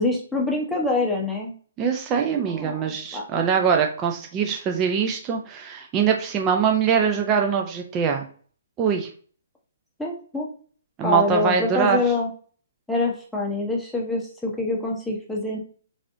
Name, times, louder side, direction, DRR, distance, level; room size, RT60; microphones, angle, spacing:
voice 1, 0.0-1.5 2.5-3.2 10.0-10.5 11.0-12.3 12.9-15.6, left 2 dB, ahead, -3 dB, 0.8 m, -25 dB
voice 2, 1.8-8.3 8.8-9.1 11.0-12.0, right 7 dB, 25° right, 2 dB, 0.4 m, -23 dB
3.2 x 2.6 x 2.5 m, 0.43 s
hypercardioid pair, 140°, 0 cm